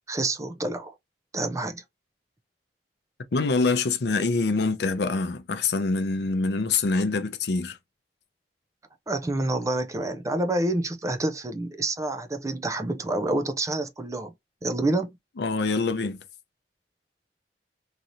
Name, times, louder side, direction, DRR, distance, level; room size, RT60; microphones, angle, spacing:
voice 1, 0.1-0.9 1.3-1.8 9.1-14.3 14.6-15.1, right 2 dB, 20° right, 0.4 m, -28 dB
voice 2, 3.3-7.8 15.4-16.2, left 3 dB, 70° left, 0.5 m, -25 dB
3.0 x 2.7 x 2.5 m
head